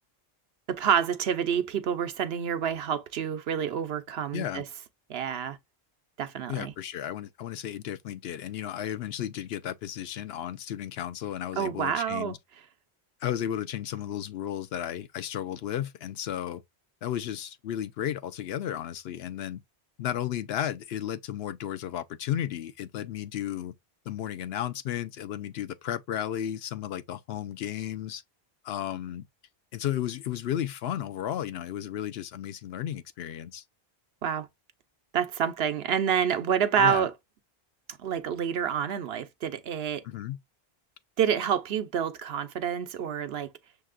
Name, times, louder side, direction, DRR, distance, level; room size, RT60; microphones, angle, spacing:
voice 1, 0.7-4.6 5.1-5.6 6.2-6.7 11.6-12.3 34.2-34.5 35.1-37.1 38.0-40.0 41.2-43.5, right 8 dB, 80° right, 0.9 m, -28 dB
voice 2, 4.3-4.6 6.5-12.4 13.2-16.6 17.0-19.6 20.0-23.7 24.1-28.2 28.6-29.3 29.7-33.6 36.8-37.1 40.0-40.4, left 11 dB, 80° left, 0.8 m, -33 dB
6.5 x 2.8 x 2.3 m
omnidirectional pair, 1.0 m